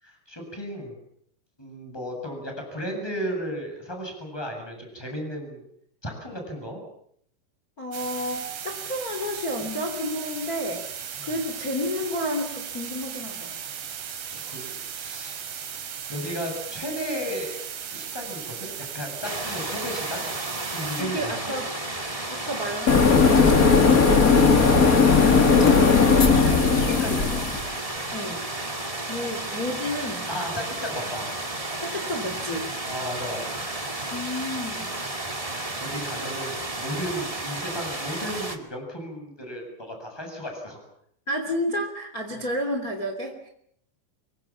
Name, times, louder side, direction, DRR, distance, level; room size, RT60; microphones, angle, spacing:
voice 1, 0.0-0.9 1.6-5.6 6.0-6.8 11.2-11.3 14.3-15.4 16.1-17.6 17.9-20.3 20.7-21.6 25.2-27.3 30.3-31.4 32.8-33.6 35.8-40.8, equal, 5° left, 3 dB, 7.3 m, -34 dB
voice 2, 7.8-10.8 11.2-13.5 21.0-21.7 22.3-24.1 28.1-28.4 29.1-30.3 31.8-32.7 34.1-34.9 41.3-43.5, left 1 dB, 25° left, 4 dB, 3.0 m, -31 dB
sound 1, 7.9-21.0, right 8 dB, 80° right, 5.0 m, -36 dB
sound 2, 19.2-38.6, right 2 dB, 20° right, 0.8 m, -32 dB
sound 3, 22.9-27.6, left 5 dB, 40° left, 1.2 m, -17 dB
25.5 x 23.5 x 7.4 m, 0.69 s
omnidirectional pair, 5.0 m